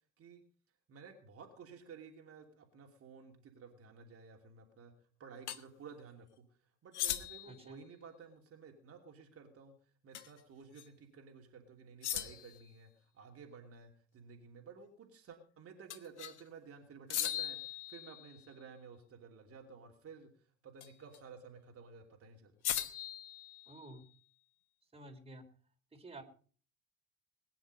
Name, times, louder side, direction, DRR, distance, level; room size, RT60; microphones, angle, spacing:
voice 1, 0.9-4.9 5.2-6.4 6.8-9.7 10.0-22.5, right 5 dB, 40° right, 3 dB, 2.9 m, -54 dB
sound 1, 5.5-5.6 6.9-7.6 10.1-10.4 10.8-10.9 12.0-12.6 15.9-16.4 17.1-18.5 20.8-21.2 22.6-24.0, left 11 dB, 80° left, 1.3 m, -39 dB
voice 2, 7.4-7.8 23.7-24.0 24.9-25.4 25.9-26.2, right 2 dB, 15° right, 4 dB, 3.7 m, -51 dB
21.0 x 10.0 x 5.4 m, 0.43 s
hypercardioid pair, 65°, 34 cm